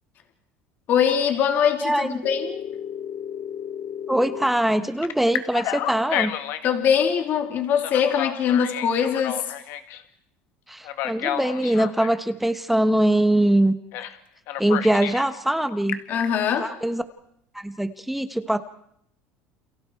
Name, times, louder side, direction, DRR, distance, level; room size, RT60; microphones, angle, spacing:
voice 1, 0.9-2.5 6.6-9.5 16.1-16.7, left 8 dB, 45° left, 4 dB, 3.0 m, -22 dB
voice 2, 1.8-2.2 4.1-6.3 10.7-13.8 14.6-16.0 16.6-17.0 17.5-18.6, right 1 dB, 5° right, 10 dB, 1.1 m, -22 dB
Telephone, 2.2-4.5 5.0-6.8 7.7-10.0 10.8-12.2 13.9-14.2 14.5-15.3 15.7-16.2, left 11 dB, 60° left, 2.0 m, -31 dB
29.5 x 28.5 x 4.6 m, 0.73 s
cardioid pair, 140°, 5 cm